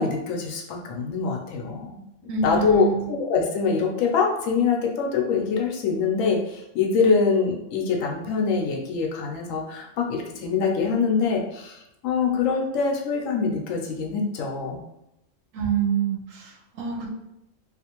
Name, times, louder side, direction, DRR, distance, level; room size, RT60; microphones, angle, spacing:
voice 1, 0.0-2.0 2.4-14.8, left 5 dB, 85° left, 0 dB, 1.0 m, -24 dB
voice 2, 2.3-3.2 15.5-17.1, right 6 dB, 90° right, 1 dB, 1.0 m, -26 dB
2.5 x 2.4 x 2.9 m, 0.87 s
omnidirectional pair, 1.3 m